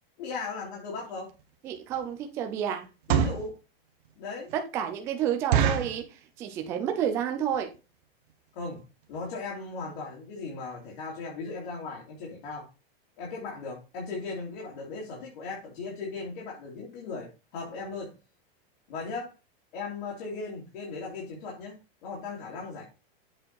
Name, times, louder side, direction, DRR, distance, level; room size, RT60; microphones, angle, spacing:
voice 1, 0.2-1.3 3.1-3.6 4.2-4.5 8.5-8.8 9.1-12.7 13.2-18.1 18.9-19.3 19.7-22.8, left 4 dB, 55° left, 3.0 m, -37 dB
sound 1, 1.3-1.4 1.9-2.1 2.8-3.5 4.1-4.2 4.5-4.6 4.9-5.0 5.5-6.0 6.6-6.9 7.2-7.3 7.5-7.8 8.3-8.4 8.6-8.8 9.1-9.2 9.4-9.5, right 8 dB, 55° right, 1.2 m, -26 dB
voice 2, 1.6-2.9 4.5-7.7, right 9 dB, 10° right, 0.3 m, -30 dB
7.9 x 4.4 x 4.6 m
supercardioid pair, 170°, 31 cm